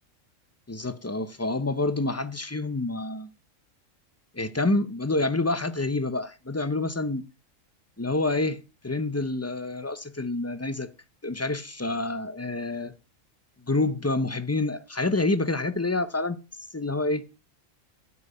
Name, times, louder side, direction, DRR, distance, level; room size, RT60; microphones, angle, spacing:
voice 1, 0.7-3.3 4.3-7.2 8.0-10.9 11.2-12.9 13.7-16.4 16.7-17.3, left 2 dB, 15° left, 0.6 m, -27 dB
12.5 x 5.5 x 8.2 m
omnidirectional pair, 1.3 m